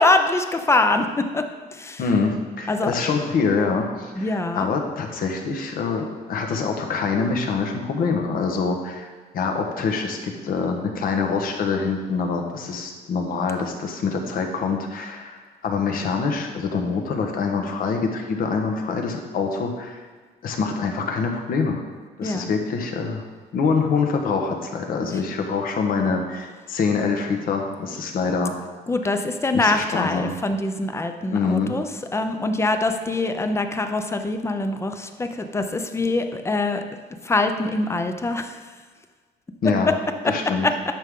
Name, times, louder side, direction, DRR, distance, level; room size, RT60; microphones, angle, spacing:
voice 1, 0.0-1.4 1.7-2.0 2.7-2.9 4.2-4.7 22.2-22.5 28.9-36.8 37.2-38.6 39.9-40.0 40.2-40.3 40.6-40.7, left 2 dB, 15° left, 7 dB, 0.7 m, -23 dB
voice 2, 2.0-9.1 9.3-20.0 20.4-21.8 22.2-23.2 23.5-28.5 29.5-30.3 31.3-31.7 39.6-39.9 40.3-40.7, left 5 dB, 60° left, 3 dB, 1.3 m, -25 dB
10.5 x 6.2 x 3.8 m, 1.5 s
cardioid pair, 110°, 17 cm